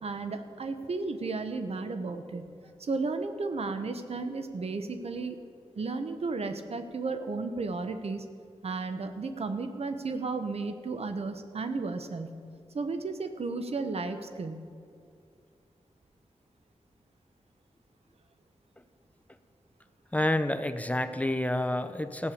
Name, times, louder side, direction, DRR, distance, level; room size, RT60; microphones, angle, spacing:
voice 1, 0.0-2.5 2.8-5.4 5.7-8.2 8.6-12.4 12.7-14.6, right 3 dB, 65° right, 8 dB, 1.0 m, -33 dB
voice 2, 20.1-22.3, left 1 dB, 15° left, 9 dB, 0.7 m, -29 dB
15.0 x 6.9 x 8.5 m, 2.3 s
cardioid pair, 65°, 11 cm